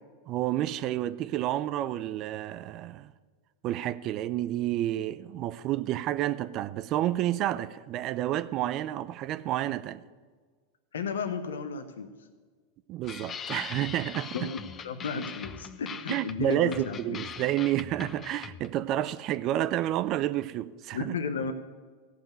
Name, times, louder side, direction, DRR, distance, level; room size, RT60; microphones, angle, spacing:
voice 1, 0.3-3.1 3.6-10.0 12.9-14.5 16.1-21.1, right 13 dB, 45° right, 0.5 m, -30 dB
voice 2, 10.9-12.1 14.3-17.2 20.9-21.5, left 5 dB, 85° left, 0.9 m, -33 dB
sound 1, 13.0-18.8, left 7 dB, 30° left, 0.8 m, -41 dB
14.5 x 5.9 x 9.1 m
hypercardioid pair, 105°, 0 cm